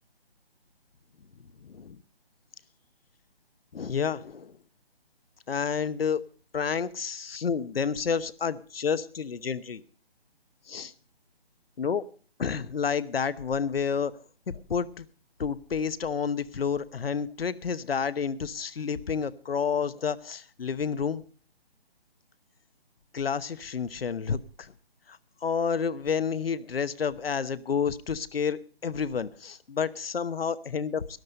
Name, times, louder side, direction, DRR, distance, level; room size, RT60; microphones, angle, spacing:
voice 1, 1.6-2.0 3.7-4.6 5.5-6.2 6.5-9.8 10.7-10.9 11.8-12.0 12.4-14.1 14.5-15.1 15.4-21.2 23.1-24.7 25.1-31.1, left 6 dB, 65° left, 16 dB, 1.0 m, -30 dB
13.0 x 12.0 x 5.3 m, 0.41 s
figure-of-eight pair, 155°, 31 cm